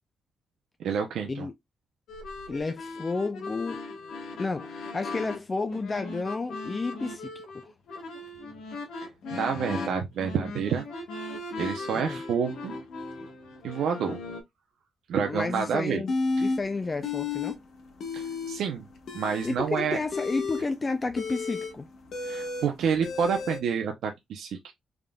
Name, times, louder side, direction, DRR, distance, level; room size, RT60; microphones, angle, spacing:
voice 1, 0.8-1.5 9.3-10.9 11.6-12.8 13.6-14.2 15.1-16.0 16.4-16.5 18.1-18.9 19.1-20.0 22.2-24.7, right 6 dB, 80° right, 0.7 m, -28 dB
sound 1, 2.1-14.4, left 3 dB, 90° left, 1.2 m, -38 dB
voice 2, 2.5-3.8 4.4-7.3 7.5-7.7 11.9-12.2 15.2-16.1 16.4-17.6 19.4-21.9, left 3 dB, 25° left, 0.4 m, -31 dB
sound 2, 16.1-16.6 17.0-17.5 17.8-18.6 19.0-23.6, left 4 dB, 65° left, 1.0 m, -32 dB
3.7 x 3.6 x 2.3 m
cardioid pair, 135°, 0 cm